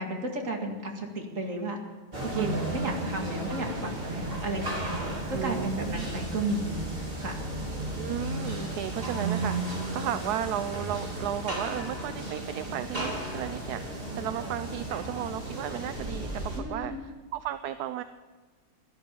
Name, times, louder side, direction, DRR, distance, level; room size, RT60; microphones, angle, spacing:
voice 1, 0.0-1.8 2.2-4.9 5.3-7.4 16.6-17.0, right 2 dB, 55° right, 1 dB, 2.5 m, -33 dB
sound 1, 2.1-16.6, right 1 dB, 35° right, 2.9 m, -34 dB
voice 2, 2.3-2.7 5.3-6.1 8.0-16.9 17.3-18.0, right 11 dB, 80° right, 11 dB, 1.2 m, -34 dB
16.5 x 11.5 x 7.0 m, 1.3 s
omnidirectional pair, 1.7 m